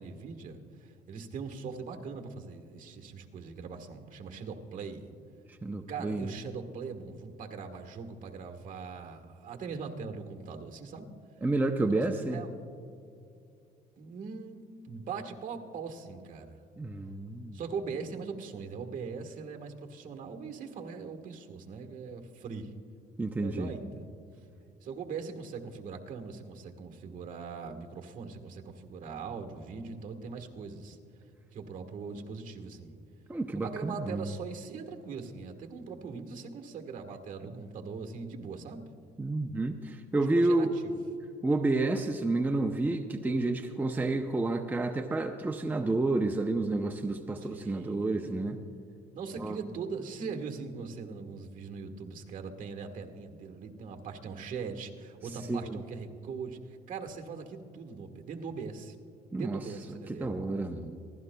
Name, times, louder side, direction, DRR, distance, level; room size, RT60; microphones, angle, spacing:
voice 1, 0.0-5.1 5.9-11.1 11.8-12.0 12.3-12.6 14.0-16.6 17.5-22.7 23.3-24.1 24.8-31.0 31.5-32.9 33.5-38.8 40.2-41.0 47.4-48.4 49.1-58.9 59.3-60.3, right 5 dB, 50° right, 5 dB, 1.4 m, -41 dB
voice 2, 5.6-6.3 11.4-12.4 16.8-17.6 23.2-23.7 33.3-34.3 39.2-40.7 41.4-48.6 49.4-49.6 55.5-55.8 59.3-59.6 60.1-61.0, right 2 dB, 10° right, 5 dB, 0.6 m, -30 dB
24.0 x 16.0 x 2.2 m, 2.5 s
cardioid pair, 110°, 17 cm